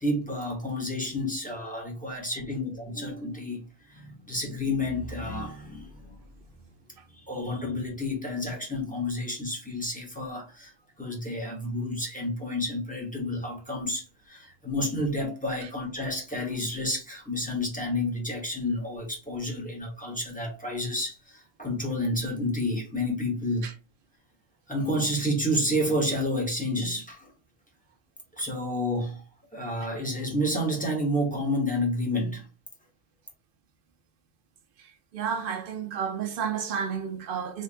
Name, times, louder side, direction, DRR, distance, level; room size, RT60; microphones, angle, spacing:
voice 1, 0.0-3.6 3.9-6.2 7.3-10.7 11.0-23.7 24.7-27.3 28.4-29.2 29.5-32.5, left 1 dB, 5° left, 1.1 m, -30 dB
voice 2, 35.1-37.6, right 7 dB, 55° right, 0.7 m, -31 dB
3.7 x 3.5 x 2.5 m
omnidirectional pair, 1.3 m